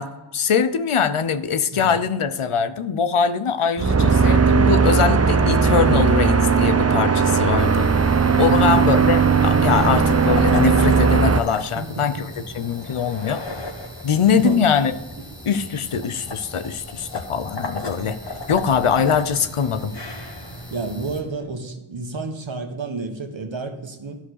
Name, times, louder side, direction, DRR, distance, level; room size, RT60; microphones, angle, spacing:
voice 1, 0.0-7.9 8.4-13.4 14.0-14.9 15.5-18.2 18.5-19.9, left 7 dB, 85° left, 12 dB, 0.8 m, -22 dB
sound 1, 3.8-11.4, right 5 dB, 30° right, 0.6 m, -17 dB
sound 2, 7.6-21.2, right 1 dB, 5° right, 2.1 m, -40 dB
voice 2, 8.4-8.9 11.7-12.3 14.4-14.7 20.7-24.2, right 3 dB, 65° right, 5 dB, 1.5 m, -30 dB
sound 3, 9.9-21.5, left 3 dB, 55° left, 1.8 m, -37 dB
12.0 x 5.0 x 6.5 m, 1.1 s
wide cardioid pair, 50°, 49 cm